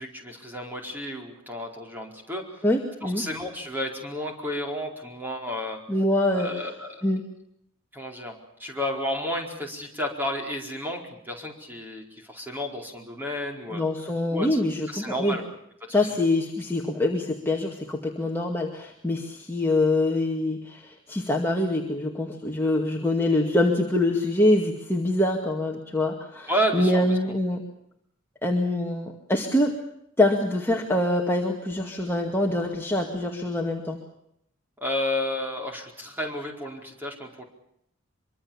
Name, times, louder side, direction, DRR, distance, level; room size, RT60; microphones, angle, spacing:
voice 1, 0.0-2.7 3.0-5.8 6.3-7.1 7.9-8.3 8.6-13.8 14.3-14.6 14.9-15.5 15.9-16.0 26.5-27.2 34.8-37.4, equal, 10° right, 1 dB, 4.5 m, -31 dB
voice 2, 2.6-3.2 5.9-6.5 7.0-7.2 13.7-15.4 15.9-27.6 28.4-29.7 30.2-34.0, left 1 dB, 10° left, -1 dB, 2.1 m, -24 dB
24.5 x 24.5 x 7.2 m, 0.74 s
head